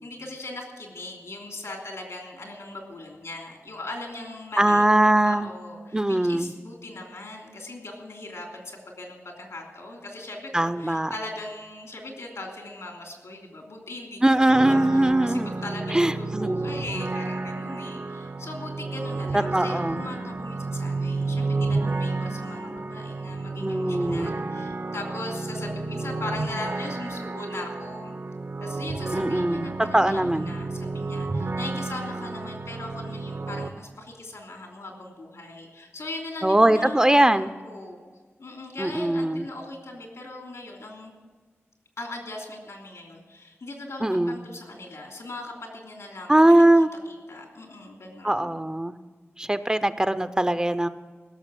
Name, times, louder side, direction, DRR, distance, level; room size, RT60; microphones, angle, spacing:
voice 1, 0.0-4.8 5.2-28.1 28.6-38.0 38.4-41.1 42.0-46.6 47.3-48.6, left 2 dB, 85° left, 2 dB, 3.0 m, -39 dB
voice 2, 4.6-5.5 5.9-6.5 10.5-11.1 14.2-15.5 15.9-16.6 19.3-20.0 23.6-24.3 29.1-30.5 36.4-37.5 38.8-39.5 44.0-44.4 46.3-46.9 48.2-49.0 49.4-50.9, right 1 dB, 15° right, 12 dB, 0.5 m, -21 dB
sound 1, 14.5-33.7, right 3 dB, 55° right, 0.8 m, -31 dB
16.5 x 6.9 x 9.0 m, 1.5 s
wide cardioid pair, 95°, 5 cm